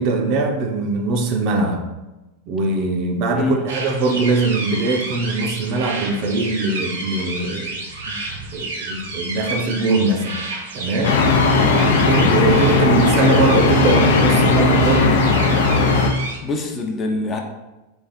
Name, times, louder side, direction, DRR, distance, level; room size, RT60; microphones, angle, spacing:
voice 1, 0.0-1.8 2.5-7.8 8.1-8.2 8.5-10.4 10.7-11.2 12.1-15.2, right 3 dB, 50° right, 4 dB, 0.6 m, -21 dB
sound 1, 3.7-16.4, right 2 dB, 85° right, 0.8 m, -30 dB
sound 2, 11.0-16.1, left 3 dB, 70° left, 0.5 m, -16 dB
voice 2, 16.4-17.4, left 3 dB, 30° left, 2 dB, 0.6 m, -24 dB
3.7 x 2.4 x 4.1 m, 1.0 s
hypercardioid pair, 115°, 0 cm